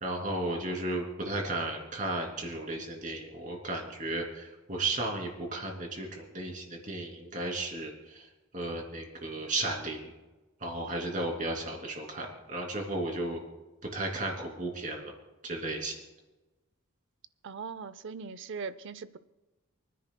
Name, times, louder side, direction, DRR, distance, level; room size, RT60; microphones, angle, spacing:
voice 1, 0.0-8.3 8.5-10.1 10.6-13.4 13.9-15.1 15.4-15.9, right 2 dB, 35° right, 1 dB, 2.8 m, -34 dB
voice 2, 17.4-19.2, right 5 dB, 60° right, 15 dB, 0.6 m, -40 dB
29.0 x 10.0 x 2.3 m, 1.1 s
head